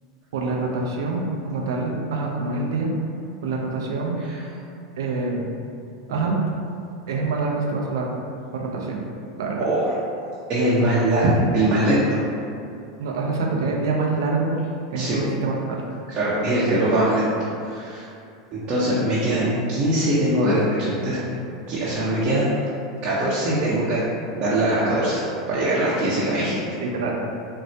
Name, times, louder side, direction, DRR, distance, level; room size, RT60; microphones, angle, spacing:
voice 1, 0.3-2.9 3.4-4.2 5.0-5.5 6.1-6.4 7.1-8.0 8.5-9.0 9.4-9.7 13.0-14.6 14.9-15.8 26.0-26.1 26.8-27.1, right 3 dB, 75° right, 0 dB, 0.5 m, -26 dB
voice 2, 9.6-9.9 10.5-12.0 14.9-15.2 16.1-17.3 17.6-18.1 18.5-21.2 21.7-22.5 23.0-24.0 24.3-26.8, right 1 dB, 45° right, -9 dB, 0.7 m, -22 dB
4.2 x 2.0 x 2.7 m, 2.5 s
hypercardioid pair, 100°, 2 cm